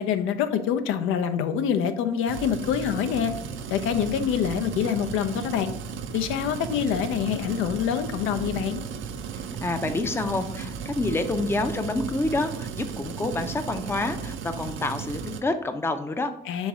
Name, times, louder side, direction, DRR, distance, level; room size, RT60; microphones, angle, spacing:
voice 1, 0.0-3.3 3.7-5.7 6.1-8.8 16.5-16.7, left 8 dB, 90° left, 8 dB, 0.4 m, -26 dB
sound 1, 2.3-15.4, right 6 dB, 75° right, 0.5 m, -35 dB
voice 2, 9.3-16.3, left 2 dB, 10° left, 7 dB, 0.4 m, -28 dB
3.5 x 3.1 x 4.8 m, 0.80 s
cardioid pair, 90°, 20 cm